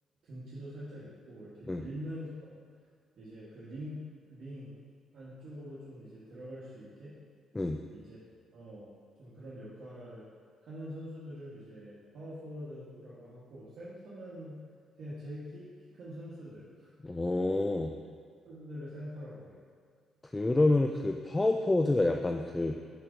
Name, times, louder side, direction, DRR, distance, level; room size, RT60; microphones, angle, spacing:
voice 1, 0.2-2.6 3.2-4.0 4.3-4.8 5.1-7.1 7.9-8.2 8.5-8.9 9.2-10.2 10.7-14.6 15.0-16.9 18.0-18.1 18.4-19.6, equal, 65° right, -10 dB, 1.3 m, -44 dB
voice 2, 17.0-17.9 20.3-22.8, left 2 dB, 15° left, 4 dB, 0.3 m, -27 dB
4.9 x 4.5 x 5.0 m, 2.1 s
cardioid pair, 90°, 0 cm